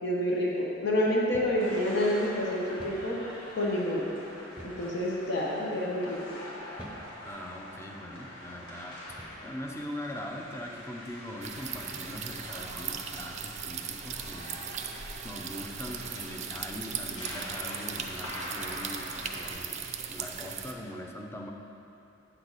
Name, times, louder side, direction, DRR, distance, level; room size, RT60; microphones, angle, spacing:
voice 1, 0.0-3.2 3.5-4.0 4.6-6.4, left 1 dB, 60° left, -3 dB, 1.0 m, -28 dB
sound 1, 1.3-1.6 2.0-2.1 2.8-3.1 4.6-4.9 5.6-5.8 6.8-7.1 7.9-8.1 9.1-9.5, right 1 dB, 5° right, 0.9 m, -47 dB
sound 2, 1.6-19.5, left 1 dB, 85° left, 1.7 m, -44 dB
voice 2, 7.2-14.6 15.2-21.5, left 1 dB, 15° left, 0 dB, 0.6 m, -41 dB
sound 3, 11.4-20.7, right 7 dB, 35° right, 0.5 m, -38 dB
8.8 x 6.5 x 4.0 m, 2.8 s
head